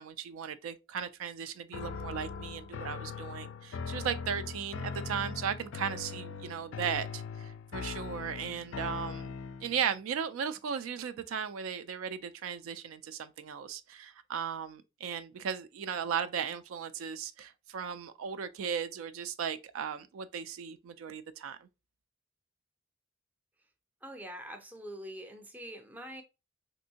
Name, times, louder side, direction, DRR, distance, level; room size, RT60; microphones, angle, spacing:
voice 1, 0.0-9.3 9.6-21.7, right 7 dB, 80° right, 0.3 m, -36 dB
sound 1, 1.7-9.8, left 5 dB, 60° left, 0.3 m, -40 dB
voice 2, 24.0-26.2, equal, 10° right, 0.5 m, -44 dB
3.3 x 2.6 x 2.8 m
head